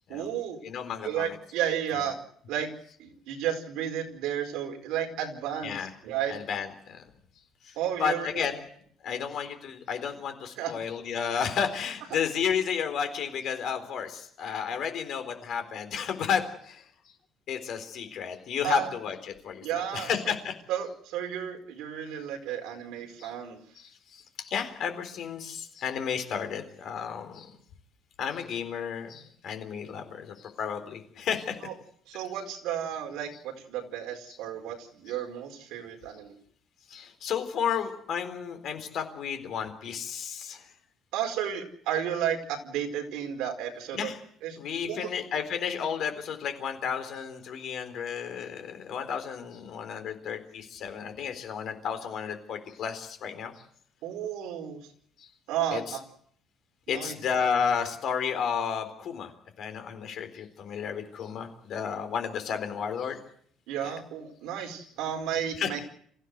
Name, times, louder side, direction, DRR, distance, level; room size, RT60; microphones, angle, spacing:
voice 1, 0.1-0.6 1.0-2.2 2.5-2.7 3.0-5.8 6.0-6.3 7.8-8.3 9.1-9.3 10.6-10.7 18.6-18.9 19.6-20.1 20.7-23.6 31.7-31.8 32.1-36.3 41.1-44.1 44.4-44.5 44.9-45.1 54.0-54.8 55.5-56.0 56.9-57.1 63.7-65.8, right 9 dB, 70° right, 3 dB, 4.7 m, -32 dB
voice 2, 0.6-1.4 5.6-5.9 6.3-7.0 7.6-8.6 9.0-17.1 17.5-20.5 23.2-23.3 23.8-27.5 28.2-31.6 34.3-34.4 35.1-35.2 36.9-40.7 43.9-44.2 44.6-53.6 55.2-55.3 55.7-56.0 56.9-59.3 59.6-63.2 63.8-63.9 65.6-65.8, left 7 dB, 45° left, 7 dB, 3.9 m, -32 dB
27.0 x 15.5 x 8.1 m, 0.65 s
cardioid pair, 175°, 0 cm